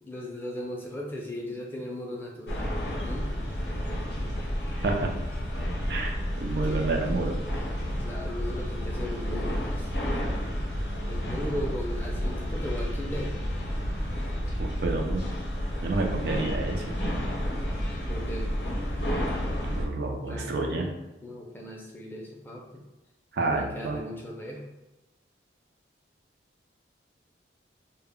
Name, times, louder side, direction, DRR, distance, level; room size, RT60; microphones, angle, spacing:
voice 1, 0.0-3.3 6.6-6.8 7.9-9.9 11.1-13.4 18.1-18.5 20.3-20.9 21.2-22.8 23.5-24.6, left 1 dB, 10° left, -2 dB, 0.4 m, -37 dB
sound 1, 2.5-19.9, equal, 65° left, 0.5 m, -30 dB
voice 2, 5.9-7.4 14.6-15.2 15.8-17.0 19.6-20.9 23.3-24.0, right 3 dB, 60° right, 2 dB, 0.4 m, -29 dB
2.1 x 2.0 x 3.6 m, 1.0 s
head